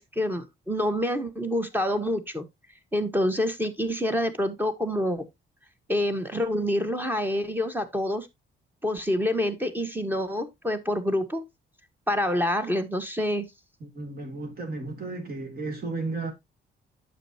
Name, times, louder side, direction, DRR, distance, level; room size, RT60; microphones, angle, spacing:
voice 1, 0.0-2.4 2.9-5.2 5.9-8.3 8.8-11.4 12.1-13.5, left 1 dB, 10° right, 1.3 m, -27 dB
voice 2, 13.8-16.3, right 3 dB, 50° right, 3.0 m, -34 dB
9.1 x 6.6 x 2.8 m
cardioid pair, 90°, 20 cm